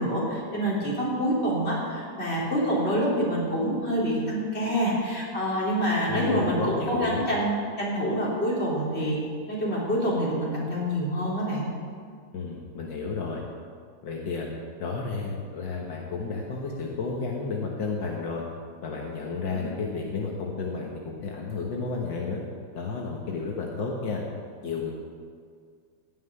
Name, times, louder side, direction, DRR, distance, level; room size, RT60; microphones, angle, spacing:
voice 1, 0.0-9.2 9.5-11.7 19.5-19.9, equal, 35° left, -5 dB, 3.8 m, -27 dB
voice 2, 6.1-7.2 12.3-13.4 14.0-14.5 14.8-18.4 18.8-22.4 22.7-24.2 24.6-24.9, left 4 dB, 75° left, -1 dB, 2.0 m, -32 dB
16.5 x 5.9 x 9.5 m, 2.1 s
omnidirectional pair, 2.0 m